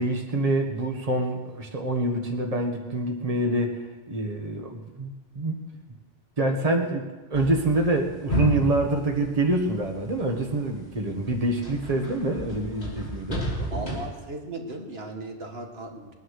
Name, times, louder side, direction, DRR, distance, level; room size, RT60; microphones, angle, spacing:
voice 1, 0.0-5.6 6.4-14.0, right 2 dB, 35° right, 3 dB, 1.5 m, -26 dB
sound 1, 7.3-10.3 10.8-14.1, equal, 90° left, 3.8 m, -32 dB
voice 2, 13.7-16.1, right 2 dB, 75° right, 2 dB, 2.1 m, -37 dB
21.5 x 9.8 x 6.5 m, 1.2 s
omnidirectional pair, 1.0 m